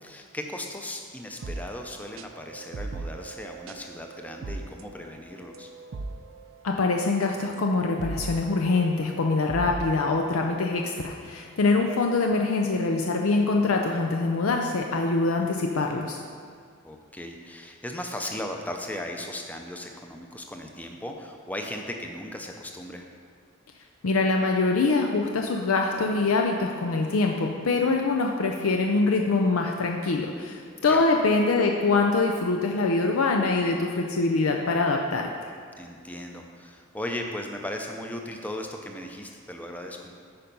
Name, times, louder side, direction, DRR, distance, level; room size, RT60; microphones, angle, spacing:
voice 1, 0.0-5.7 16.8-23.1 30.9-31.1 35.8-40.1, left 1 dB, 5° left, 3 dB, 0.5 m, -37 dB
sound 1, 1.4-11.0, right 3 dB, 70° right, 0.5 m, -39 dB
voice 2, 6.6-16.2 24.0-35.5, left 3 dB, 80° left, 2 dB, 0.5 m, -24 dB
8.8 x 5.1 x 5.4 m, 2.1 s
head